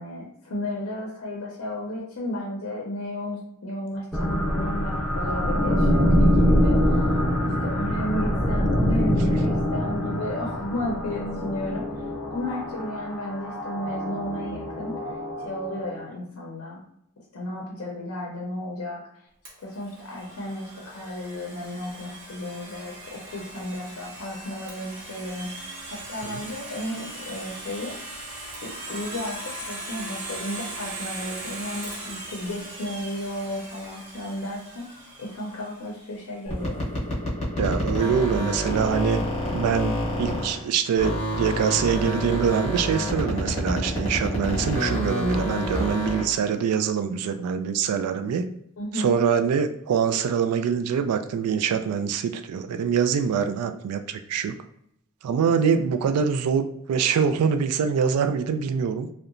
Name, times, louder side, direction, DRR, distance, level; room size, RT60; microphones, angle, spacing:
voice 1, 0.0-7.1 7.4-15.0 15.4-16.8 17.3-19.0 19.6-28.0 28.6-36.9 48.8-49.1, left 1 dB, 70° left, -2 dB, 0.6 m, -33 dB
sound 1, 4.1-16.1, equal, ahead, 0.6 m, -24 dB
Domestic sounds home sounds, 19.4-36.2, right 2 dB, 55° right, 0.9 m, -39 dB
sound 2, 36.5-40.7 41.0-46.4, equal, 30° left, 0.8 m, -28 dB
voice 2, 37.6-39.2 39.5-48.5 48.9-54.5 55.2-59.1, right 7 dB, 85° right, 9 dB, 0.3 m, -24 dB
2.8 x 2.1 x 2.4 m, 0.74 s
head